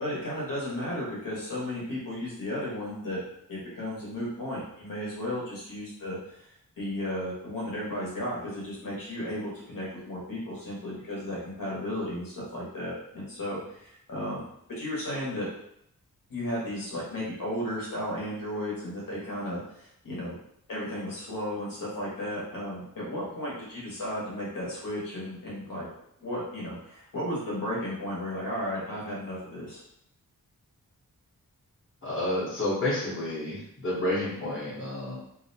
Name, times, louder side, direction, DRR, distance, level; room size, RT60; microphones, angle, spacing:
voice 1, 0.0-3.2 3.5-6.5 6.8-15.5 16.3-20.3 20.7-25.8 26.2-29.8, left 1 dB, 70° left, -6 dB, 1.0 m, -34 dB
voice 2, 32.0-35.2, left 1 dB, 35° left, -8 dB, 0.9 m, -30 dB
2.6 x 2.1 x 2.6 m, 0.73 s
wide cardioid pair, 150°, 35 cm